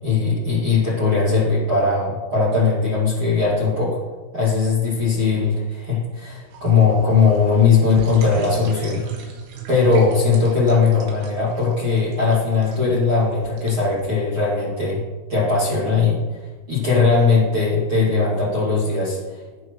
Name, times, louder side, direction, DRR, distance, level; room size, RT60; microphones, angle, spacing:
voice 1, 0.0-4.0 4.3-9.0 9.7-15.0 15.3-16.2 16.7-19.4, left 4 dB, 40° right, -8 dB, 2.1 m, -19 dB
sound 1, 6.5-14.1, right 6 dB, 80° right, 3.8 m, -36 dB
17.0 x 6.4 x 3.2 m, 1.3 s
omnidirectional pair, 5.6 m